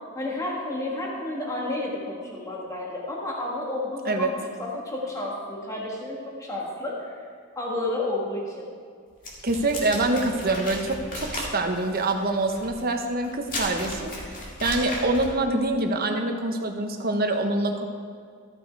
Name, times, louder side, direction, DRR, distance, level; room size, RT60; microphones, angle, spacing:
voice 1, 0.1-7.2 7.5-8.7, left 2 dB, 15° left, -4 dB, 1.7 m, -31 dB
sound 1, 9.2-15.4, left 1 dB, 40° left, 2.1 m, -35 dB
voice 2, 9.4-14.1 14.6-17.8, right 2 dB, 45° right, 4 dB, 0.9 m, -25 dB
13.5 x 6.6 x 4.6 m, 2.1 s
head